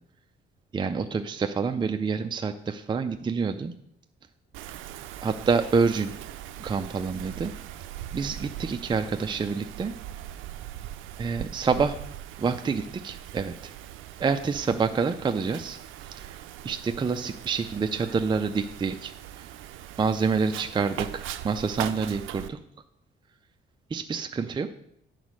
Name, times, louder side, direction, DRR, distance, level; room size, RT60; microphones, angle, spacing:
voice 1, 0.7-3.7 5.2-6.1 6.6-7.5 8.1-9.9 11.2-12.0 12.4-13.7 14.2-15.8 16.1-16.3 16.6-19.5 20.0-22.6 23.9-24.7, right 5 dB, 25° right, 7 dB, 0.4 m, -27 dB
Wind, 4.5-22.5, right 12 dB, 85° right, 0.4 m, -40 dB
7.9 x 4.1 x 6.3 m, 0.73 s
cardioid pair, 90°, 20 cm